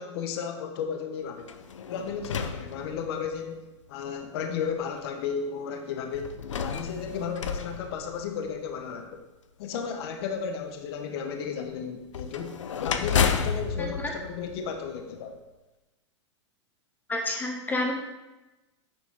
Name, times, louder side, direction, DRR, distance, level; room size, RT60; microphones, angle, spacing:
voice 1, 0.0-1.6 1.8-9.2 9.6-12.5 12.8-15.3, left 6 dB, 55° left, 5 dB, 1.1 m, -34 dB
sound 1, 1.4-3.4 4.2-4.3 6.1-8.7 12.1-15.2, left 6 dB, 90° left, 0.7 m, -31 dB
voice 2, 13.8-14.1 17.1-17.9, left 2 dB, 10° left, 1 dB, 1.6 m, -29 dB
9.7 x 6.1 x 3.7 m, 1.1 s
hypercardioid pair, 120°, 15 cm